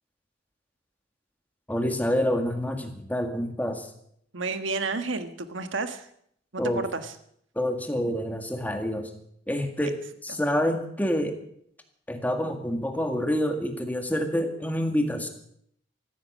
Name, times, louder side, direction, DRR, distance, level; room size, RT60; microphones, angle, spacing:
voice 1, 1.7-3.9 6.6-6.8 7.6-9.1 9.5-10.0 10.2-11.4 12.1-15.3, equal, 10° left, 5 dB, 1.9 m, -27 dB
voice 2, 4.3-6.1 6.5-7.1 10.3-10.4, right 3 dB, 75° right, 9 dB, 1.4 m, -31 dB
14.5 x 14.0 x 6.3 m, 0.69 s
head